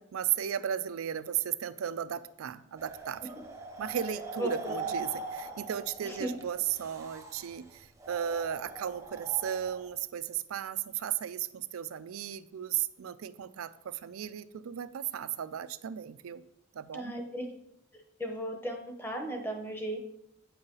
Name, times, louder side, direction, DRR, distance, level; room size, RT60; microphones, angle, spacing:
voice 1, 0.0-3.4 3.8-16.4 16.7-17.2, right 9 dB, 90° right, 15 dB, 0.4 m, -35 dB
sound 1, 2.8-9.9, right 3 dB, 15° right, 0.7 m, -42 dB
voice 2, 16.9-17.4 18.2-20.0, right 1 dB, 10° left, 3 dB, 0.9 m, -35 dB
8.7 x 5.7 x 3.9 m, 0.81 s
head